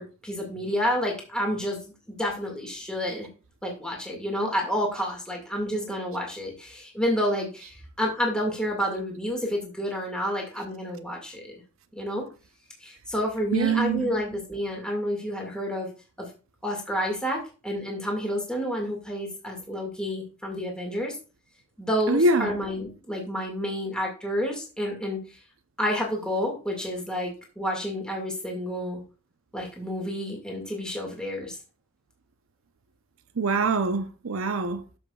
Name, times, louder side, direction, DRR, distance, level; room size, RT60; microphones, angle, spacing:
voice 1, 0.0-1.8 2.1-3.3 3.6-11.6 12.0-12.2 12.8-15.9 16.2-16.3 16.6-21.2 21.8-25.2 25.8-29.0 29.5-31.6, equal, 5° left, 2.0 m, -29 dB
voice 2, 13.5-14.1 22.1-22.5 33.4-34.8, right 3 dB, 80° right, 0.7 m, -24 dB
12.5 x 7.1 x 2.4 m
head